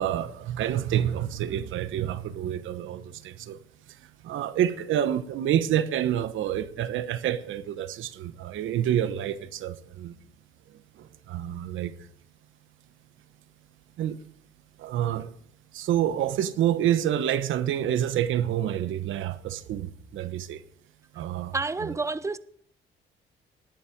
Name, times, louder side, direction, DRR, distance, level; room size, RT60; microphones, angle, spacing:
voice 1, 0.0-3.6 3.9-10.2 11.0-11.9 14.0-14.2 14.8-15.3 15.7-20.6 21.1-21.5 21.8-21.9, right 11 dB, 80° right, 1.1 m, -28 dB
voice 2, 21.5-22.4, right 3 dB, 15° right, 0.7 m, -29 dB
19.5 x 7.4 x 5.2 m
cardioid pair, 90°, 20 cm